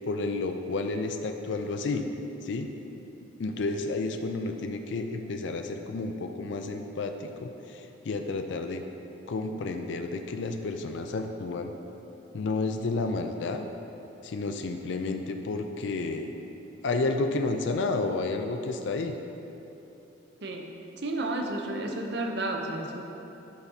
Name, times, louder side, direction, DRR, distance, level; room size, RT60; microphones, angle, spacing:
voice 1, 0.1-2.1 2.4-2.7 3.4-8.8 9.3-11.7 12.3-13.6 14.2-16.3 16.8-19.2, left 3 dB, 65° left, 6 dB, 0.4 m, -31 dB
voice 2, 21.0-23.0, right 2 dB, 55° right, 2 dB, 0.7 m, -31 dB
10.0 x 5.6 x 2.7 m, 3.0 s
head